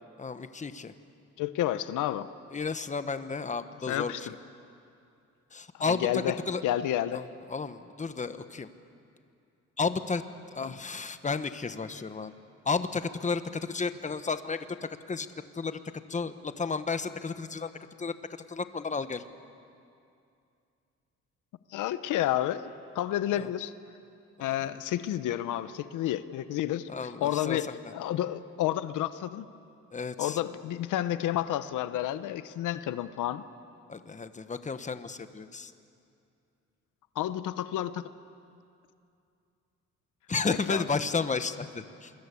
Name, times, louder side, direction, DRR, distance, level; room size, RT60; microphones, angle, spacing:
voice 1, 0.2-0.9 2.5-4.1 5.5-6.6 7.1-7.2 7.5-8.7 9.8-10.2 10.5-12.3 12.6-15.3 15.5-15.8 16.1-17.7 18.0-18.1 18.5-19.2 26.9-27.6 29.9-30.4 33.9-35.7 40.3-42.1, left 4 dB, 25° left, 10 dB, 1.2 m, -32 dB
voice 2, 1.4-2.3 3.9-4.3 5.7-6.4 6.6-7.2 10.6-10.8 21.7-23.7 24.4-27.7 27.9-29.5 30.2-33.4 37.1-38.1 40.7-40.8, left 12 dB, 85° left, 13 dB, 0.9 m, -30 dB
27.5 x 21.5 x 8.4 m, 2.5 s
cardioid pair, 90°, 30 cm